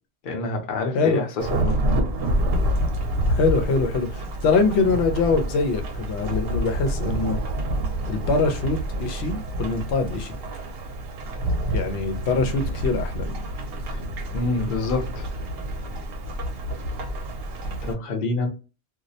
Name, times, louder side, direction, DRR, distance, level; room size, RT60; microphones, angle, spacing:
voice 1, 0.2-1.8 13.9-14.0 14.3-15.3 17.9-18.5, left 3 dB, 55° left, 0.7 m, -27 dB
Thunderstorm / Rain, 1.4-17.9, right 1 dB, 70° right, 0.8 m, -28 dB
voice 2, 3.3-7.4 8.1-10.4 11.7-13.2, left 4 dB, 85° left, 0.9 m, -23 dB
2.3 x 2.0 x 2.6 m
omnidirectional pair, 1.1 m